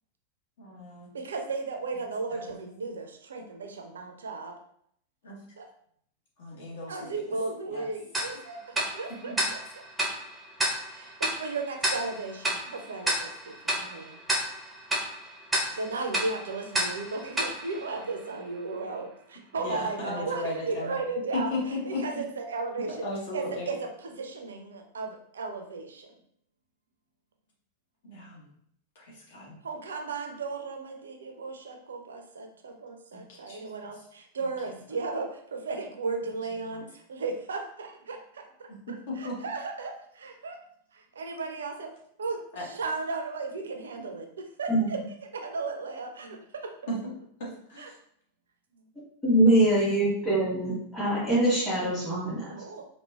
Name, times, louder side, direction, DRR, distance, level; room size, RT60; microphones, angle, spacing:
voice 1, 0.6-1.1 2.3-2.6 5.2-5.4 6.4-7.1 7.7-7.9 9.2-9.4 19.6-21.0 21.3-22.2 23.0-23.7 28.0-28.4 29.0-29.6 33.1-33.6 36.7-36.8 38.7-39.4 42.5-42.6 46.9-47.1 47.4-47.8 49.8-50.1, left 2 dB, 55° left, -3 dB, 0.9 m, -36 dB
voice 2, 1.1-4.5 5.6-5.7 6.9-9.6 10.9-14.2 15.7-23.0 23.3-26.1 29.6-38.5 38.9-40.6 40.9-41.9 42.2-46.7 47.8-47.9 52.4-52.9, right 3 dB, 65° right, 3 dB, 0.4 m, -35 dB
Tick-tock, 8.1-18.6, right 1 dB, 10° right, 0.6 m, -32 dB
voice 3, 49.2-52.6, right 1 dB, 10° left, -12 dB, 1.4 m, -23 dB
3.1 x 2.0 x 2.3 m, 0.67 s
figure-of-eight pair, 90°, 0 cm